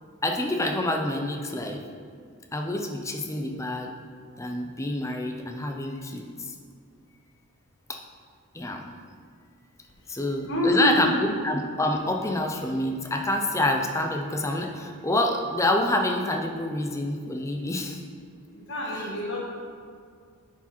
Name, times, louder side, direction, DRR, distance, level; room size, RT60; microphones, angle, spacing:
voice 1, 0.2-1.8 2.5-3.9 4.4-6.2 7.9-8.0 8.5-8.9 10.1-11.1 11.4-18.0, left 1 dB, 15° left, 3 dB, 0.5 m, -27 dB
voice 2, 10.5-11.3 18.5-19.5, left 1 dB, 55° left, -3 dB, 1.8 m, -27 dB
9.5 x 4.8 x 4.4 m, 2.1 s
head